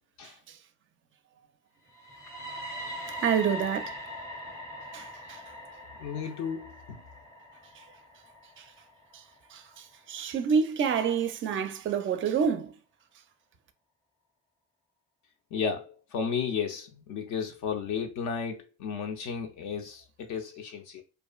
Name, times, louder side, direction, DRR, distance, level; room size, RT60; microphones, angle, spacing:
sound 1, 1.9-9.8, equal, 10° left, 0.6 m, -42 dB
voice 1, 3.2-4.0 4.9-5.4 7.8-7.9 8.6-8.7 9.1-9.2 9.5-12.8, right 7 dB, 35° right, 0.4 m, -28 dB
voice 2, 6.0-7.0 15.5-21.0, left 6 dB, 55° left, 0.4 m, -33 dB
2.4 x 2.3 x 2.2 m
hypercardioid pair, 55°, 36 cm